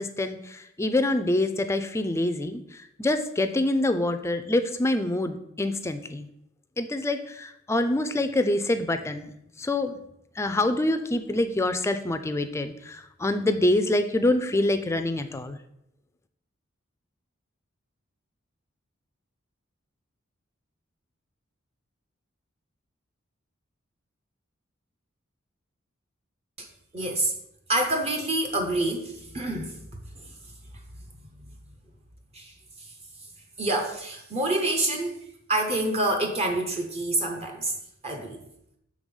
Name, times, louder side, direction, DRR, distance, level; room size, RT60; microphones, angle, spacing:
voice 1, 0.0-6.3 6.8-9.9 10.4-15.6, left 1 dB, 15° left, 9 dB, 0.4 m, -26 dB
voice 2, 26.9-27.3 27.7-29.8 30.1-30.3 32.3-32.9 33.6-35.2 35.5-37.7 38.0-38.4, right 2 dB, 30° right, 3 dB, 0.7 m, -27 dB
6.4 x 3.4 x 5.3 m, 0.78 s
head